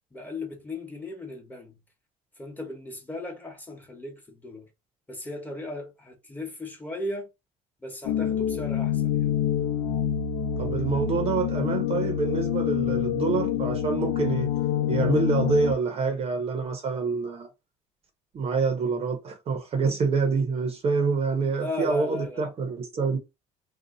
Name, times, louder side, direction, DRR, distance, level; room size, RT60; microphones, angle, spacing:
voice 1, 0.1-1.8 2.4-4.7 5.1-7.3 7.8-9.4 21.4-22.5, left 1 dB, 10° left, 1.0 m, -37 dB
sound 1, 8.0-15.7, left 9 dB, 85° left, 0.6 m, -26 dB
voice 2, 10.6-14.5 14.9-17.5 18.3-23.2, right 4 dB, 40° right, 0.7 m, -26 dB
2.7 x 2.2 x 3.8 m
cardioid pair, 120°, 15 cm